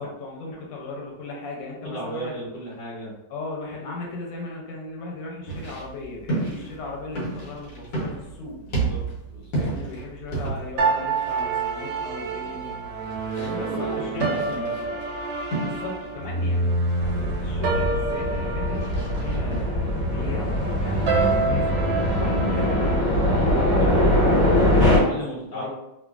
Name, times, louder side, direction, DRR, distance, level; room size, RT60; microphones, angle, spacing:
voice 1, 0.0-2.3 3.3-8.6 9.6-12.8 13.4-14.1 15.5-16.8 17.2-24.1 24.6-25.0 25.5-25.7, left 3 dB, 85° left, -1 dB, 1.4 m, -37 dB
voice 2, 1.8-3.1 8.6-9.0 9.3-9.7 12.4-12.7 13.5-14.9 23.8-24.2 25.0-25.7, equal, 45° left, -8 dB, 1.4 m, -35 dB
sound 1, 5.4-19.6, right 3 dB, 65° left, 1.5 m, -33 dB
sound 2, 10.8-23.0, right 3 dB, 75° right, 1.2 m, -27 dB
sound 3, 17.0-25.0, left 1 dB, 30° left, 1.6 m, -22 dB
3.3 x 2.2 x 2.3 m, 0.90 s
omnidirectional pair, 2.0 m